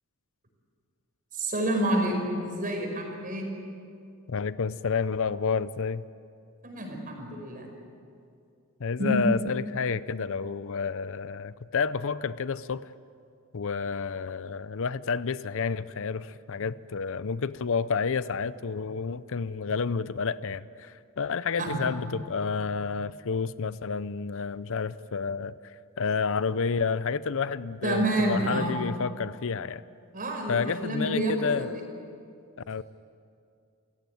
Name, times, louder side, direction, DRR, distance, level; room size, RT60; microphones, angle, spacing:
voice 1, 1.3-3.5 6.6-7.7 9.0-9.2 21.6-21.8 27.8-28.7 30.1-31.8, right 1 dB, 40° right, 2 dB, 5.4 m, -29 dB
voice 2, 4.3-6.0 8.8-12.9 13.5-29.8 30.5-31.7 32.7-32.8, left 5 dB, 65° left, 16 dB, 0.6 m, -30 dB
28.5 x 16.5 x 9.3 m, 2.4 s
head